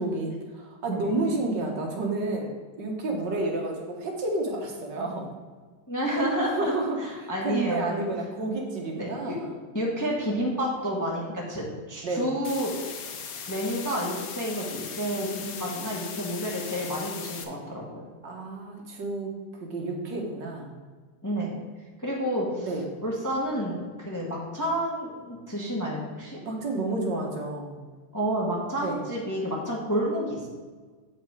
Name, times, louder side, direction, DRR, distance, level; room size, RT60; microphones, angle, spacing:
voice 1, 0.0-2.5 2.8-5.3 6.5-9.5 12.0-12.3 18.2-19.3 19.6-20.7 22.6-22.9 26.4-27.8 28.8-29.0, right 2 dB, 70° right, 1 dB, 1.8 m, -30 dB
voice 2, 5.9-6.7 7.0-8.1 8.9-9.3 9.7-12.7 13.5-18.0 21.2-21.5 22.0-22.7 23.0-26.4 28.1-30.5, equal, 10° left, -3 dB, 1.1 m, -30 dB
sound 1, 12.4-17.4, left 6 dB, 60° left, 1.1 m, -38 dB
7.6 x 5.3 x 4.7 m, 1.4 s
omnidirectional pair, 2.1 m